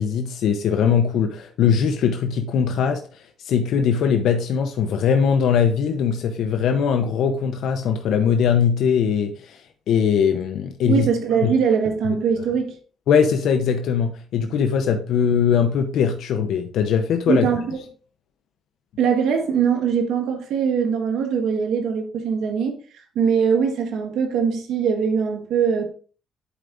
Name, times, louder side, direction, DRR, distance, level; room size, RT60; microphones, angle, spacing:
voice 1, 0.0-3.0 3.4-9.6 9.9-11.1 11.4-11.5 13.1-17.5, left 7 dB, 75° left, 0.8 m, -20 dB
voice 2, 10.9-12.7 17.3-17.8 19.0-22.8 23.1-25.9, right 6 dB, 80° right, 1.5 m, -21 dB
11.5 x 4.8 x 2.6 m
cardioid pair, 95°, 0 cm